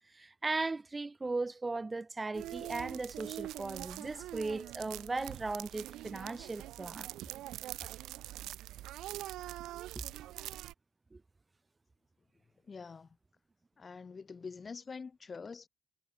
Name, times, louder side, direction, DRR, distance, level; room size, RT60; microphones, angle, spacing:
voice 1, 0.1-7.1 11.1-11.2, right 3 dB, 20° right, 1.1 m, -37 dB
sound 1, 2.3-10.7, right 14 dB, 90° right, 1.0 m, -44 dB
voice 2, 12.6-13.1 13.8-15.7, left 5 dB, 35° left, 3.4 m, -45 dB
cardioid pair, 90°, 0 cm